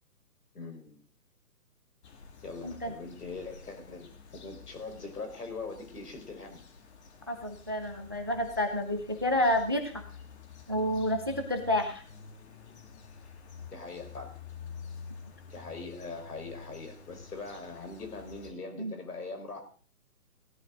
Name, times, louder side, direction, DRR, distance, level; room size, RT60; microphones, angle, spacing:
voice 1, 0.5-1.0 2.4-4.1 4.3-6.6 13.7-14.3 15.5-19.6, left 3 dB, 75° left, 6 dB, 4.6 m, -41 dB
sound 1, 2.0-18.5, left 6 dB, 45° left, 2.0 m, -49 dB
voice 2, 2.6-2.9 7.3-10.0 10.7-12.0 18.8-18.9, left 1 dB, 15° right, 7 dB, 0.5 m, -29 dB
16.5 x 11.0 x 3.9 m, 0.42 s
hypercardioid pair, 155°, 46 cm